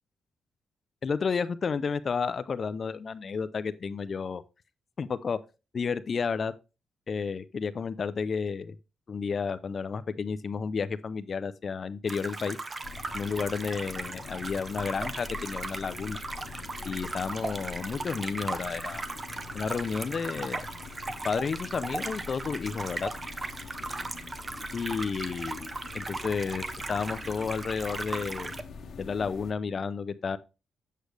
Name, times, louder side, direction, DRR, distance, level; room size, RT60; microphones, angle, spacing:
voice 1, 1.0-4.4 5.0-5.4 5.7-6.5 7.1-8.8 9.1-12.6 13.1-16.2 16.8-19.0 19.5-20.7 21.2-23.1 24.7-28.5 29.0-30.4, left 5 dB, 35° left, 0.4 m, -31 dB
sound 1, 12.1-28.6, right 3 dB, 20° right, 0.5 m, -38 dB
sound 2, 12.8-29.5, left 5 dB, 55° left, 1.0 m, -45 dB
8.2 x 6.4 x 3.2 m
wide cardioid pair, 160°, 0 cm